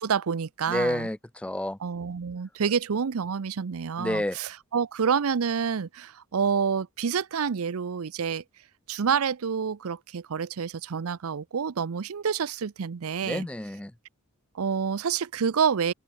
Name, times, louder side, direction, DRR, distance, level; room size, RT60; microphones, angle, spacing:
voice 1, 0.0-1.1 1.8-8.4 8.9-13.5 14.5-15.9, right 6 dB, 85° right, 0.5 m, -28 dB
voice 2, 0.7-1.8 4.0-4.4 13.2-13.9, left 1 dB, 5° left, 0.3 m, -29 dB
open air
head